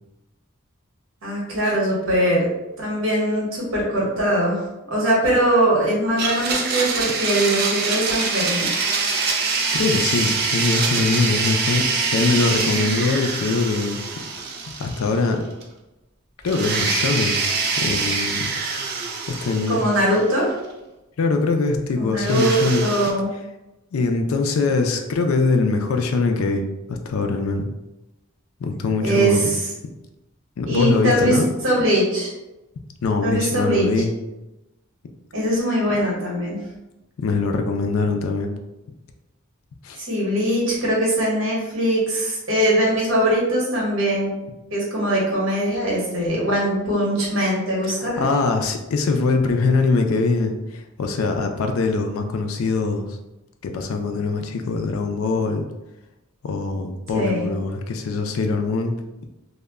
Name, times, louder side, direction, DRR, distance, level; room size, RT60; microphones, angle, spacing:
voice 1, 1.2-2.5 2.8-4.6 4.9-8.7 12.3-13.0 19.7-20.5 21.9-23.3 29.0-29.7 30.6-32.3 33.2-34.0 35.3-36.7 40.0-44.3 44.7-48.2 57.1-57.5, right 1 dB, 65° right, -4 dB, 0.9 m, -21 dB
Domestic sounds home sounds, 6.2-15.3 15.6-15.7 16.5-20.4 22.2-23.1, right 4 dB, 50° right, 0.4 m, -24 dB
voice 2, 9.7-14.0 14.7-15.4 16.4-17.4 17.8-18.5 19.4-19.8 21.2-22.9 23.9-27.7 28.6-29.5 30.6-31.5 33.0-34.1 37.2-38.5 39.8-40.0 48.2-53.1 53.6-55.7 56.4-58.9, left 3 dB, 85° left, 5 dB, 0.4 m, -22 dB
2.1 x 2.0 x 3.4 m, 0.99 s
head